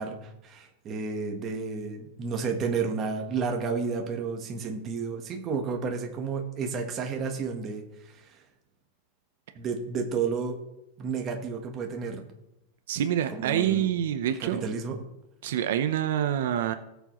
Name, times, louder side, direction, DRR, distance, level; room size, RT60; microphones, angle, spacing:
voice 1, 0.0-8.4 9.5-10.6 11.0-12.2 13.3-13.9 14.3-15.0, right 5 dB, 20° right, 3 dB, 1.1 m, -31 dB
voice 2, 12.9-14.6 15.4-16.7, right 10 dB, 60° right, 9 dB, 0.6 m, -26 dB
18.0 x 7.1 x 3.0 m, 0.90 s
supercardioid pair, 180°, 0 cm